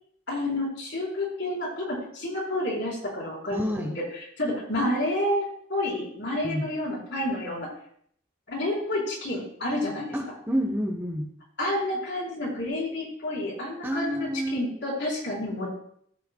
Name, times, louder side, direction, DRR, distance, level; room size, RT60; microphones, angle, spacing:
voice 1, 0.3-7.7 8.5-10.2 11.6-15.7, left 1 dB, 65° left, -3 dB, 3.7 m, -29 dB
voice 2, 3.5-4.0 6.4-6.7 10.1-11.3 13.8-14.6, equal, 10° right, 4 dB, 0.8 m, -29 dB
14.0 x 7.7 x 2.2 m, 0.65 s
head